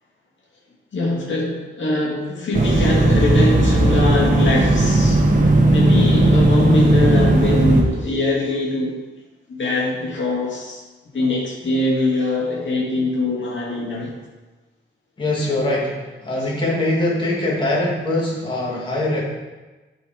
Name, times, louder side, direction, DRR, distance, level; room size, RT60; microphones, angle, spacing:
voice 1, 0.9-5.2 5.7-9.0 9.5-10.8 11.1-14.1 16.4-16.5, left 2 dB, 65° left, -3 dB, 2.2 m, -22 dB
sound 1, 2.5-7.8, right 2 dB, 40° right, 1.4 m, -16 dB
voice 2, 15.2-19.2, left 1 dB, 25° left, -5 dB, 1.9 m, -22 dB
11.0 x 4.6 x 4.9 m, 1.2 s
wide cardioid pair, 115°, 21 cm